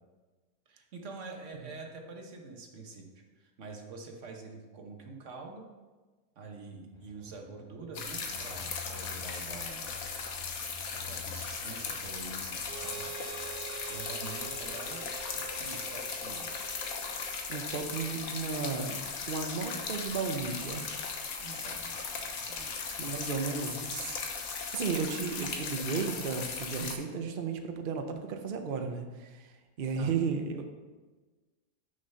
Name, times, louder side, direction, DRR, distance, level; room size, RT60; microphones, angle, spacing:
voice 1, 0.7-5.6 6.4-10.0 10.9-13.1 13.5-16.5 21.4-23.0 29.9-30.1, right 3 dB, 50° right, 2 dB, 1.2 m, -46 dB
sound 1, 6.9-16.8 17.1-17.2, left 7 dB, 45° left, 0.3 m, -52 dB
sound 2, 7.9-26.9, left 5 dB, 60° left, 1.3 m, -38 dB
Harmonica, 12.6-18.1, right 6 dB, 85° right, 1.9 m, -46 dB
voice 2, 17.5-20.9 23.0-24.2 24.5-30.6, right 5 dB, 70° right, 5 dB, 0.5 m, -34 dB
6.3 x 5.7 x 5.6 m, 1.3 s
omnidirectional pair, 1.7 m